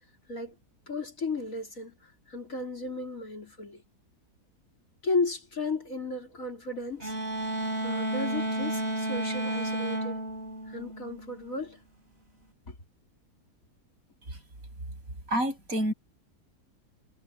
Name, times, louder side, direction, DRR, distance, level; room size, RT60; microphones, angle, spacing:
voice 1, 0.9-3.8 5.0-7.1 7.8-10.2 10.7-11.8 12.7-12.8, left 3 dB, 50° left, 4.3 m, -34 dB
sound 1, 7.0-11.5, right 1 dB, 40° right, 4.3 m, -32 dB
voice 2, 15.3-15.9, equal, 55° right, 7.0 m, -27 dB
omnidirectional pair, 1.8 m